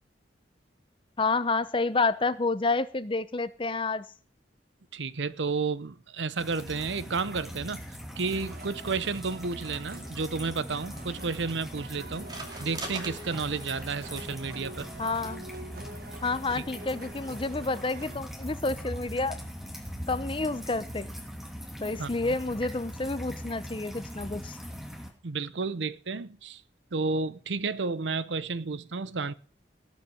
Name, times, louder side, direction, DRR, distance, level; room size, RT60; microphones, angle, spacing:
voice 1, 1.2-4.1 15.0-15.5 16.2-19.4 20.1-21.1 21.8-24.6, left 3 dB, 30° left, 0.7 m, -29 dB
voice 2, 4.9-7.8 8.2-12.3 12.6-14.9 16.6-16.7 22.0-22.4 25.2-26.6 26.9-29.3, right 4 dB, 80° right, 0.8 m, -32 dB
sound 1, 6.4-25.1, equal, ahead, 2.7 m, -41 dB
sound 2, 8.3-18.2, right 2 dB, 55° right, 1.4 m, -46 dB
sound 3, 10.7-17.5, right 2 dB, 25° right, 2.6 m, -46 dB
18.5 x 6.2 x 7.0 m
head